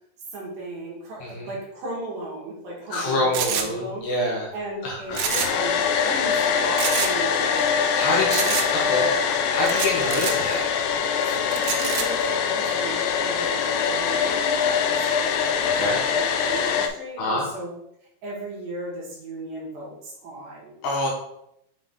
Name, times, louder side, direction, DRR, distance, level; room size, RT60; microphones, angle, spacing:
voice 1, 0.3-4.1 4.5-5.2 5.4-7.9 8.3-9.6 11.3-17.7 18.2-20.8, right 2 dB, 65° right, -5 dB, 3.0 m, -36 dB
voice 2, 2.9-4.5 4.8-5.5 7.9-8.4 8.7-9.1 9.5-10.7 15.8-16.0 17.2-17.5 20.8-21.1, left 1 dB, 70° left, -2 dB, 2.6 m, -26 dB
sound 1, 3.3-3.7 5.1-5.7 5.9-6.0 6.8-7.1 8.3-8.7 9.7-10.3 11.5-12.0, right 8 dB, 90° right, 2.6 m, -27 dB
Domestic sounds home sounds, 5.1-16.9, left 6 dB, 85° left, 2.0 m, -23 dB
7.5 x 3.7 x 3.7 m, 0.77 s
omnidirectional pair, 4.6 m